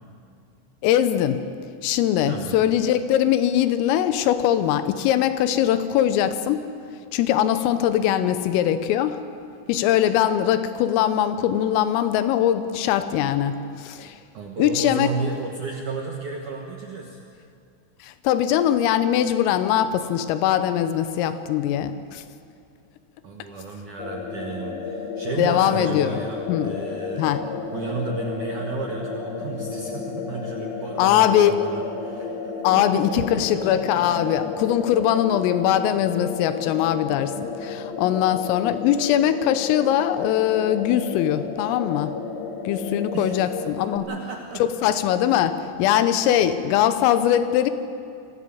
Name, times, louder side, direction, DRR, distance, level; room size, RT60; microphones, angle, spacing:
voice 1, 0.8-1.5 1.8-6.6 7.1-9.2 9.7-14.2 14.6-15.1 18.0-22.2 25.4-26.2 26.5-26.7 27.2-27.5 31.0-31.7 32.6-42.2 42.7-44.1 44.6-47.7, left 11 dB, 85° left, 11 dB, 3.6 m, -21 dB
voice 2, 2.3-2.6 14.3-17.2 23.2-27.3 27.7-34.4 35.9-36.1 43.1-43.5 44.0-44.6, right 4 dB, 70° right, 1 dB, 1.9 m, -33 dB
sound 1, 24.0-44.0, left 5 dB, 60° left, 3.9 m, -33 dB
24.5 x 16.5 x 8.5 m, 2.4 s
omnidirectional pair, 5.8 m